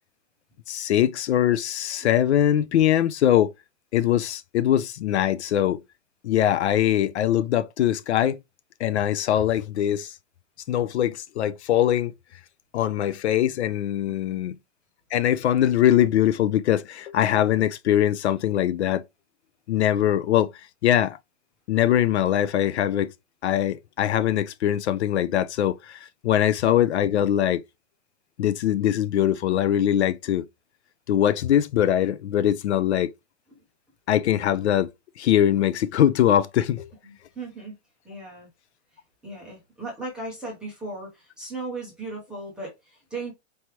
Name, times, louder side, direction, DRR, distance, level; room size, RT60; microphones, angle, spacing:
voice 1, 0.7-3.5 3.9-5.8 6.2-8.4 8.8-10.1 10.7-12.1 12.7-14.6 15.1-19.0 19.7-20.5 20.8-21.2 21.7-23.1 23.4-27.6 28.4-30.5 31.1-33.1 34.1-34.9 35.2-36.9, left 11 dB, 60° left, 0.5 m, -22 dB
voice 2, 37.0-37.7 38.0-38.5 39.2-43.3, right 2 dB, ahead, 0.5 m, -36 dB
4.5 x 3.2 x 2.9 m
hypercardioid pair, 165°, 38 cm